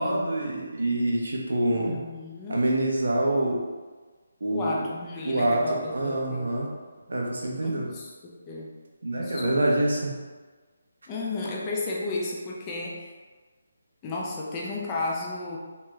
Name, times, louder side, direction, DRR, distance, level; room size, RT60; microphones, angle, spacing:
voice 1, 0.0-2.0 2.5-3.6 4.4-4.9 5.2-6.7 7.1-7.9 9.0-10.1, right 1 dB, 80° right, -1 dB, 0.7 m, -26 dB
voice 2, 1.7-2.6 4.5-6.5 7.6-8.7 9.2-9.6 11.1-13.1 14.0-15.6, left 2 dB, 15° left, -3 dB, 0.4 m, -33 dB
3.0 x 2.9 x 2.3 m, 1.4 s
hypercardioid pair, 175°, 0 cm